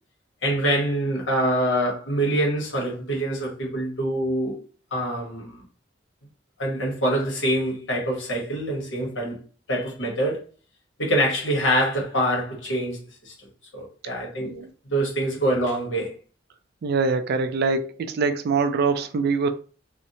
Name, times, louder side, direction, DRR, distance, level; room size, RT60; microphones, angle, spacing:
voice 1, 0.4-4.6 4.9-5.6 6.6-9.4 9.7-10.4 11.0-13.3 13.7-14.6 14.9-16.1, right 1 dB, 80° left, 1.1 m, -25 dB
voice 2, 16.8-19.5, right 4 dB, 55° right, 0.3 m, -24 dB
2.5 x 2.1 x 2.7 m
head